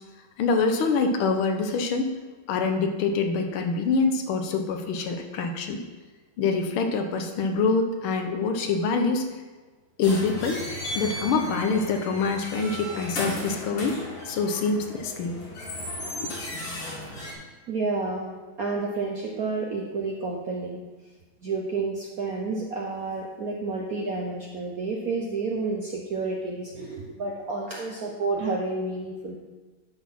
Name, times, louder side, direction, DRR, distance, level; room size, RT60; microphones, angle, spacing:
voice 1, 0.4-2.2 2.5-5.8 6.4-9.3 10.0-10.6 10.9-14.0 14.3-15.4, left 4 dB, 75° left, 5 dB, 1.8 m, -25 dB
sound 1, 10.0-17.3, left 1 dB, 60° left, 3.3 m, -35 dB
voice 2, 17.7-18.3 18.6-20.8 21.4-29.4, right 3 dB, 60° right, -1 dB, 1.0 m, -30 dB
12.0 x 4.2 x 5.5 m, 1.3 s
omnidirectional pair, 2.4 m